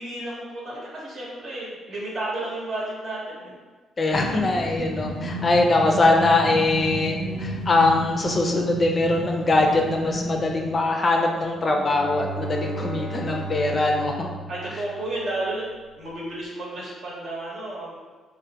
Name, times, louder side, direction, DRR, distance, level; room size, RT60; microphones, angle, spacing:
voice 1, 0.0-3.6 14.5-15.7 16.0-18.0, right 2 dB, 55° right, -5 dB, 1.0 m, -32 dB
voice 2, 4.0-14.3, left 2 dB, 35° left, 1 dB, 0.4 m, -22 dB
sound 1, 4.1-10.9, right 1 dB, 75° right, 0.9 m, -31 dB
Bowed string instrument, 11.6-15.6, right 2 dB, 35° right, 0.4 m, -34 dB
3.3 x 2.1 x 2.8 m, 1.4 s
cardioid pair, 90°, 0 cm